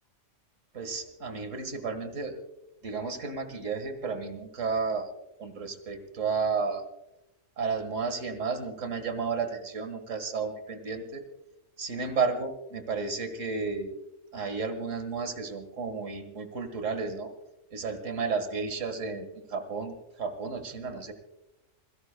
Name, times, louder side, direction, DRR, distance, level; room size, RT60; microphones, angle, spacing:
voice 1, 0.7-2.4 2.8-5.1 5.4-6.8 7.6-11.2 11.8-13.9 14.3-17.3 17.7-21.1, right 4 dB, 80° right, 9 dB, 2.1 m, -32 dB
28.0 x 16.5 x 2.3 m, 0.91 s
omnidirectional pair, 1.3 m